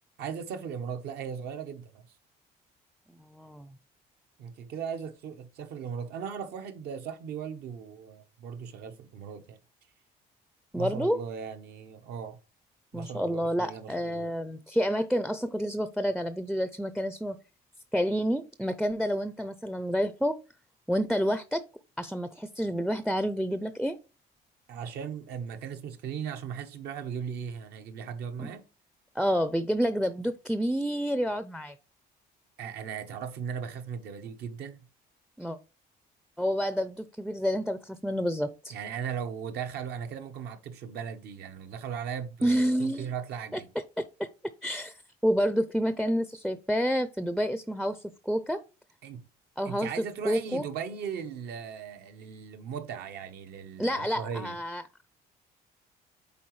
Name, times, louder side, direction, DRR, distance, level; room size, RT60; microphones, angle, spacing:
voice 1, 0.2-2.1 4.4-9.6 10.7-12.4 12.9-14.3 24.7-28.7 32.6-34.9 38.7-43.7 49.0-49.2 49.6-54.6, right 7 dB, 75° right, 0.9 m, -38 dB
voice 2, 3.2-3.7 10.7-11.2 12.9-17.4 17.9-20.4 20.9-21.6 22.0-24.0 28.4-28.5 29.2-31.8 35.4-35.6 36.4-38.8 42.4-43.1 43.5-43.6 44.0-44.3 44.6-45.0 45.2-48.6 49.6-49.9 50.2-50.7 53.8-55.1, equal, ahead, 0.4 m, -29 dB
8.6 x 3.9 x 3.1 m
cardioid pair, 110°, 17 cm